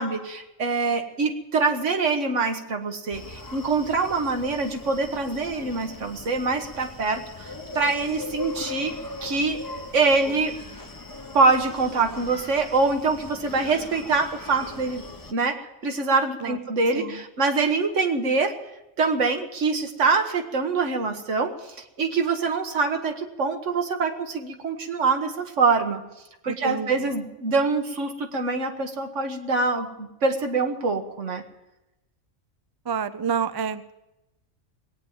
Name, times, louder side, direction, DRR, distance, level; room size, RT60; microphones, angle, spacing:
voice 1, 0.0-8.9 9.2-9.6 9.9-10.6 11.3-15.0 15.3-18.6 19.0-26.0 26.4-31.4, right 4 dB, 85° right, 5 dB, 1.7 m, -24 dB
Screaming, 3.1-15.3, left 3 dB, 20° left, 0.9 m, -40 dB
voice 2, 26.5-27.0 32.9-34.0, right 7 dB, 35° right, 12 dB, 0.4 m, -29 dB
19.5 x 9.2 x 7.2 m, 0.93 s
omnidirectional pair, 1.2 m